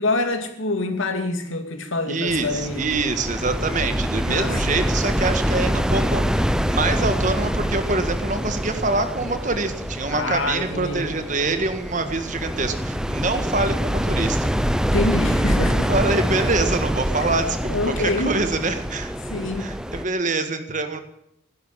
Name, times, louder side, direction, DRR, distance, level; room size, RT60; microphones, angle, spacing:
voice 1, 0.0-2.9 4.3-4.8 10.1-11.1 14.8-15.9 17.2-17.3 17.6-18.3 19.2-19.7, left 2 dB, 85° left, 2.5 m, -26 dB
voice 2, 2.1-14.5 15.9-17.6 17.8-19.1 19.6-21.0, right 3 dB, 40° right, 1.7 m, -25 dB
sound 1, 2.3-20.1, equal, 5° right, 0.6 m, -25 dB
16.0 x 12.0 x 7.4 m
head